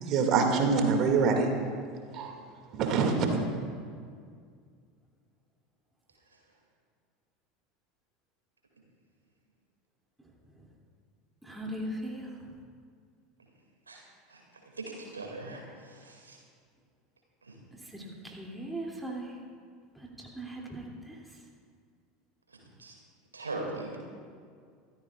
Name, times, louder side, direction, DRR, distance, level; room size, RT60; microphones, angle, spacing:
voice 1, 0.0-1.5 2.1-2.3 2.7-3.4, right 5 dB, 45° right, 4 dB, 2.2 m, -25 dB
voice 2, 11.4-12.3 17.9-19.3 20.0-21.2, right 1 dB, 5° right, -2 dB, 2.7 m, -39 dB
voice 3, 14.7-16.4 17.4-17.6 22.5-22.9 23.3-24.0, right 2 dB, 85° right, 0 dB, 2.4 m, -40 dB
24.5 x 14.0 x 2.5 m, 2.1 s
figure-of-eight pair, 75°, 0 cm